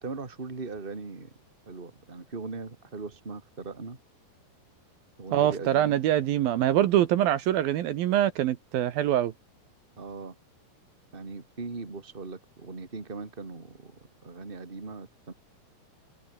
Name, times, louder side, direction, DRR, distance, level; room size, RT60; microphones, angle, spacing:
voice 1, 0.0-1.3 1.7-4.0 5.2-6.0 10.0-10.3 11.1-15.3, right 3 dB, 15° right, 2.5 m, -39 dB
voice 2, 5.3-9.3, right 12 dB, 70° right, 2.9 m, -24 dB
omnidirectional pair, 4.6 m